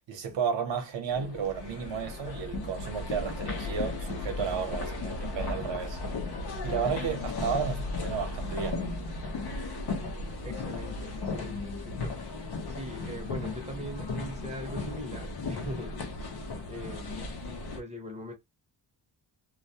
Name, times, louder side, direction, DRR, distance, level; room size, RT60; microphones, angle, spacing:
voice 1, 0.1-6.0 6.6-8.8, right 7 dB, 70° right, 0.9 m, -33 dB
sound 1, 1.1-17.8, left 3 dB, 55° left, 0.7 m, -35 dB
voice 2, 10.4-12.2 12.7-15.9 16.6-17.3 17.8-18.3, equal, 15° right, 0.7 m, -41 dB
2.2 x 2.1 x 2.6 m
wide cardioid pair, 155°, 45 cm